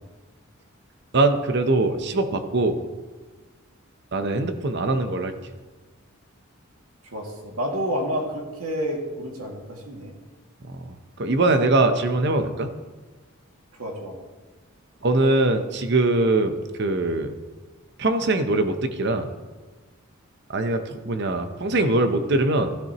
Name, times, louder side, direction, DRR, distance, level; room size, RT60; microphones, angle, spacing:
voice 1, 1.1-2.8 4.1-5.3 10.7-10.9 11.2-12.7 15.0-17.3 18.0-19.3 20.5-22.7, right 2 dB, 50° right, 8 dB, 0.7 m, -22 dB
voice 2, 7.1-10.2 13.8-14.2, equal, 90° right, 0 dB, 2.1 m, -29 dB
13.5 x 12.0 x 3.0 m, 1.3 s
head